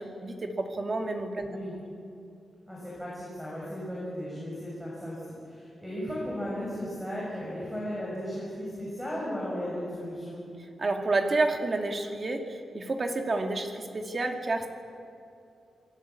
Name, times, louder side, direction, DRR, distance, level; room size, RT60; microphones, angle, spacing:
voice 1, 0.0-1.5 10.8-14.7, right 2 dB, 35° right, 3 dB, 2.3 m, -29 dB
voice 2, 2.7-10.4, equal, 5° right, -5 dB, 6.6 m, -35 dB
28.0 x 20.5 x 8.5 m, 2.6 s
wide cardioid pair, 175°, 0 cm